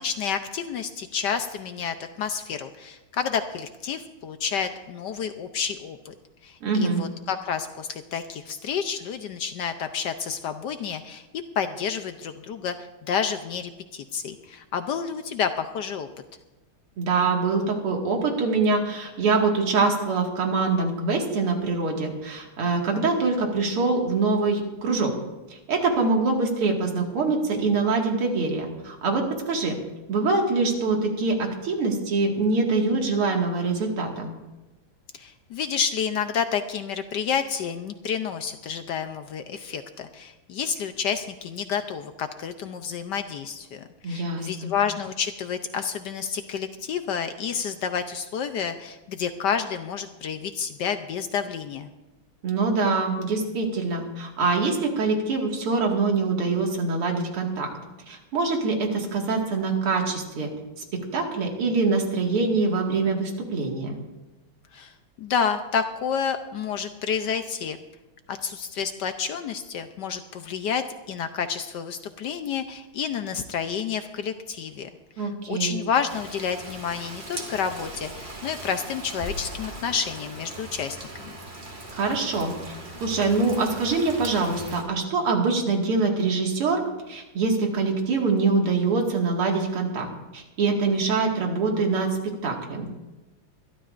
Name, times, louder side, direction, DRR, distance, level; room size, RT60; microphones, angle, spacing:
voice 1, 0.0-6.1 6.4-11.3 11.6-12.7 13.1-16.1 35.2-51.9 64.7-64.9 65.2-67.8 68.3-74.9 75.2-81.4, left 7 dB, 70° left, 8 dB, 1.1 m, -29 dB
voice 2, 6.6-7.0 17.0-25.1 25.5-29.8 30.1-34.3 44.0-44.7 52.4-57.7 58.1-60.5 61.1-64.0 75.2-75.8 81.9-82.7 83.0-86.8 87.1-90.1 90.3-92.2 92.4-92.9, right 3 dB, 85° right, 1 dB, 2.9 m, -24 dB
Rain, 76.1-84.8, right 1 dB, 30° right, 2.0 m, -39 dB
24.5 x 12.5 x 2.5 m, 1.1 s
omnidirectional pair, 2.4 m